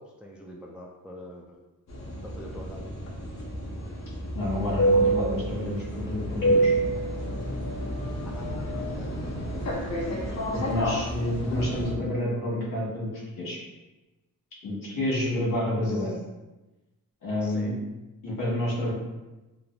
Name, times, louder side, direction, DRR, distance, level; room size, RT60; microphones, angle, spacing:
voice 1, 0.0-1.6 2.2-2.9 8.3-9.6 10.3-10.5 15.8-16.2 17.4-17.7 18.3-18.5, equal, 5° right, -1 dB, 0.3 m, -45 dB
sound 1, 1.9-11.9, right 1 dB, 50° left, 0.7 m, -29 dB
voice 2, 4.3-6.7 10.1-13.1 13.4-13.6 14.6-16.1 17.2-17.7 18.2-18.9, left 1 dB, 65° left, -5 dB, 1.2 m, -29 dB
sound 2, 4.5-11.7, left 1 dB, 75° right, 1.1 m, -38 dB
3.2 x 2.4 x 2.3 m, 1.1 s
cardioid pair, 70°, 35 cm